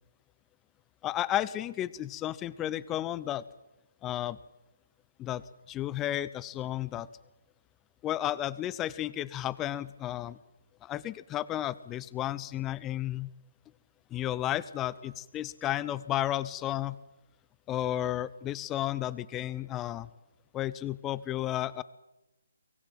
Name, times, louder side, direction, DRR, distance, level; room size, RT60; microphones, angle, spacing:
voice 1, 1.0-3.4 4.0-4.4 5.2-7.1 8.0-10.4 10.8-13.3 14.1-17.0 17.7-20.1 20.5-21.8, left 13 dB, 15° left, 19 dB, 0.7 m, -33 dB
23.5 x 18.0 x 7.7 m, 1.0 s
figure-of-eight pair, 135°, 0 cm